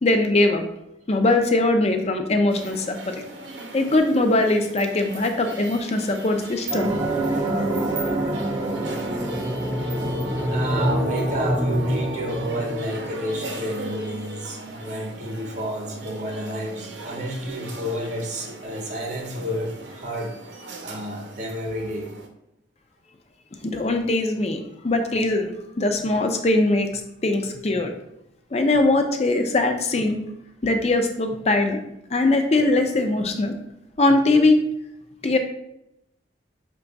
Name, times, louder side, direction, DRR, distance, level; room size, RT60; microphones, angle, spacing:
voice 1, 0.0-0.6 1.1-3.2 3.7-6.9 10.0-10.1 23.6-25.5 25.8-26.9 27.2-27.9 28.5-30.2 30.6-31.8 32.1-33.5 34.0-34.6 35.2-35.4, left 2 dB, 35° left, 5 dB, 0.4 m, -21 dB
sound 1, 2.5-22.3, right 2 dB, 70° right, 0.7 m, -39 dB
sound 2, 6.7-13.5, right 1 dB, 15° right, 0.5 m, -25 dB
voice 2, 10.2-22.1, equal, 40° right, 1 dB, 0.9 m, -31 dB
5.6 x 2.3 x 3.9 m, 0.82 s
head